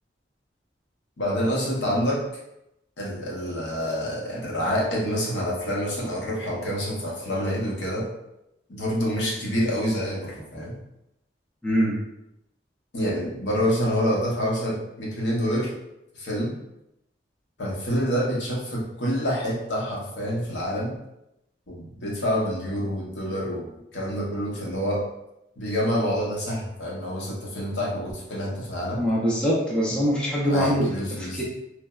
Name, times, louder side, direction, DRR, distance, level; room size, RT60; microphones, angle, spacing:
voice 1, 1.2-2.2 3.0-8.1 8.7-10.7 12.9-15.7 16.1-16.5 17.6-20.9 21.7-25.0 25.6-29.0 30.5-31.4, equal, 70° left, -4 dB, 0.8 m, -27 dB
voice 2, 11.6-12.0 29.0-31.4, equal, 5° left, -6 dB, 0.5 m, -23 dB
3.2 x 2.0 x 2.3 m, 0.85 s
head